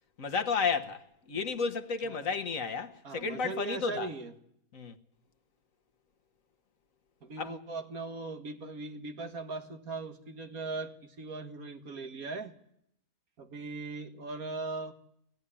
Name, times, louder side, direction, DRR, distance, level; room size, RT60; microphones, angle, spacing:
voice 1, 0.2-4.1 4.7-5.0 7.4-7.5, left 5 dB, 60° left, 1.6 m, -32 dB
voice 2, 3.0-4.3 7.2-12.5 13.4-14.9, right 3 dB, 65° right, 2.0 m, -39 dB
23.0 x 16.5 x 9.9 m
omnidirectional pair, 1.7 m